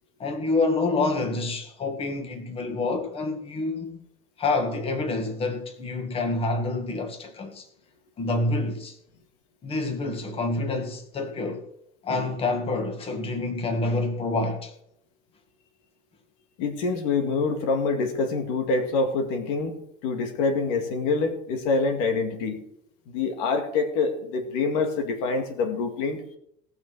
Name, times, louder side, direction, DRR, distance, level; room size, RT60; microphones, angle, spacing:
voice 1, 0.2-4.0 4.4-7.7 8.2-9.0 9.6-11.6 12.0-14.7, left 3 dB, 30° left, 2.1 m, -27 dB
voice 2, 16.6-22.6 23.1-26.2, left 4 dB, 80° left, 2.3 m, -26 dB
18.5 x 6.3 x 6.3 m
cardioid pair, 135°, 19 cm